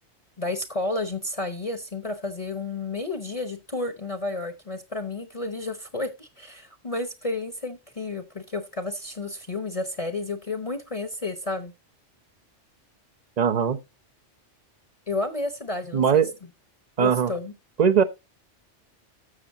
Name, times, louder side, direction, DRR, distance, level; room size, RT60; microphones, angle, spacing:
voice 1, 0.4-11.7 15.1-16.2 17.0-17.5, left 2 dB, 30° left, 1.0 m, -31 dB
voice 2, 13.4-13.8 15.9-16.3 17.0-17.3 17.8-18.0, right 7 dB, 40° right, 0.8 m, -20 dB
12.5 x 7.1 x 2.7 m
omnidirectional pair, 1.2 m